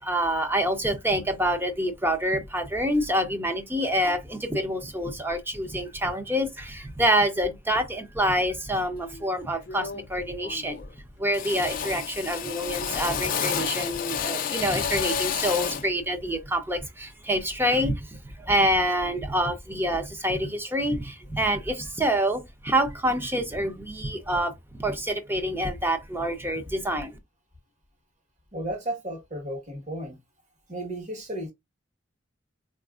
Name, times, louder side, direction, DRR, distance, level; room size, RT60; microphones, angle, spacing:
voice 1, 0.0-10.8 11.2-27.2, equal, 10° right, 0.6 m, -27 dB
Drill, 9.0-9.2 9.7-10.2 10.4-11.0 11.3-15.9, left 7 dB, 45° left, 0.4 m, -30 dB
voice 2, 28.5-30.2 30.7-31.5, right 1 dB, 40° right, 1.2 m, -33 dB
4.0 x 2.5 x 2.4 m
head